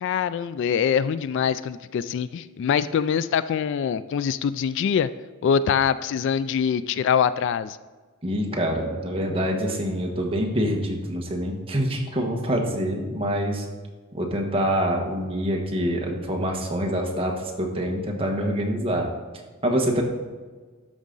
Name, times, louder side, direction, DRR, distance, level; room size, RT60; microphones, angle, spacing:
voice 1, 0.0-5.1 5.4-7.8, left 7 dB, 60° left, 14 dB, 0.3 m, -24 dB
voice 2, 8.2-13.6 14.1-19.1 19.6-20.0, equal, 25° right, 0 dB, 1.3 m, -25 dB
12.5 x 5.0 x 3.9 m, 1.4 s
head